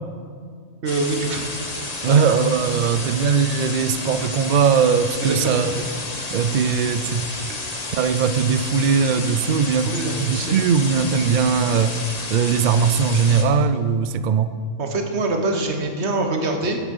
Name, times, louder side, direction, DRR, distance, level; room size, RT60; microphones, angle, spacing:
voice 1, 0.8-1.5 2.1-2.2 3.0-3.1 5.2-5.6 7.5-7.6 9.8-10.6 14.8-16.8, right 2 dB, 55° right, 4 dB, 1.5 m, -25 dB
sound 1, 0.9-13.4, left 2 dB, 30° left, 1.2 m, -31 dB
voice 2, 2.0-5.8 6.3-7.3 7.9-12.0 12.3-14.6, right 6 dB, 80° right, 11 dB, 0.4 m, -20 dB
13.0 x 9.6 x 5.4 m, 2.1 s
omnidirectional pair, 1.4 m